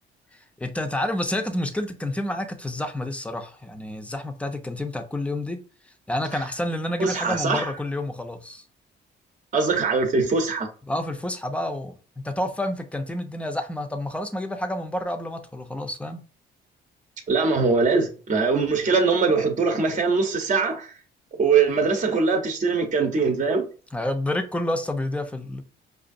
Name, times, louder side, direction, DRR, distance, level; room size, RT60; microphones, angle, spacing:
voice 1, 0.6-5.6 6.1-8.6 10.9-16.2 23.9-25.6, left 1 dB, 5° left, 0.6 m, -29 dB
voice 2, 7.0-7.7 9.5-10.7 17.3-20.9 21.4-23.6, right 4 dB, 40° right, 0.8 m, -22 dB
4.9 x 2.5 x 2.6 m
cardioid pair, 90°, 20 cm